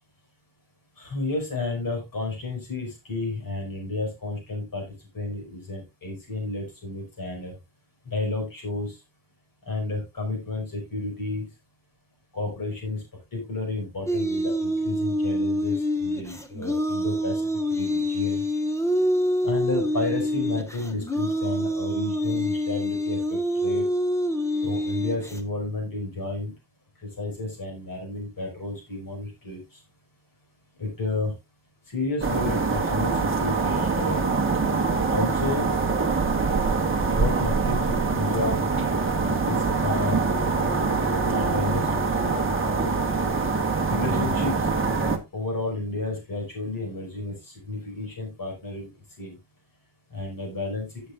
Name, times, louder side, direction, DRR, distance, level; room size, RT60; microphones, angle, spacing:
voice 1, 1.0-4.8 5.1-7.5 8.1-9.0 9.7-11.5 12.3-13.0 13.3-17.4 17.7-18.4 19.4-23.9 24.6-26.5 27.2-29.6 30.8-31.3 31.9-34.2 35.1-35.7 37.1-38.6 39.4-40.2 41.2-41.9 43.9-44.7 45.3-48.9 49.2-49.3 50.1-50.9, left 2 dB, 40° left, 2 dB, 5.5 m, -31 dB
sound 1, 14.1-25.4, equal, 5° left, 1.3 m, -26 dB
sound 2, 32.2-45.2, right 4 dB, 25° right, 1.3 m, -24 dB
16.0 x 6.9 x 2.4 m, 0.22 s
wide cardioid pair, 170°, 49 cm